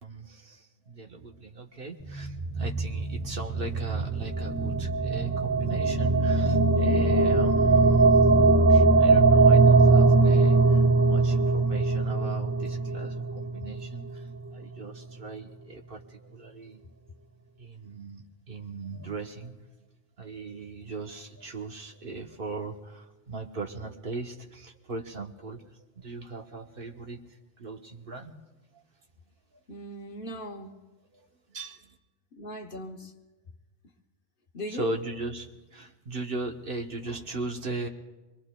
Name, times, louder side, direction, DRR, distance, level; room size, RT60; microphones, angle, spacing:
voice 1, 0.0-8.2 8.7-16.8 17.6-19.6 20.2-25.7 26.0-27.2 27.6-28.3 28.7-28.8 31.1-31.3 31.5-31.9 34.7-37.9, right 2 dB, 50° right, 2 dB, 1.1 m, -38 dB
sound 1, 2.0-14.3, right 3 dB, 20° right, 0.5 m, -21 dB
voice 2, 29.7-30.7 32.3-33.1 34.5-34.9, equal, 50° left, 4 dB, 1.1 m, -38 dB
25.5 x 23.0 x 2.2 m, 1.2 s
omnidirectional pair, 1.2 m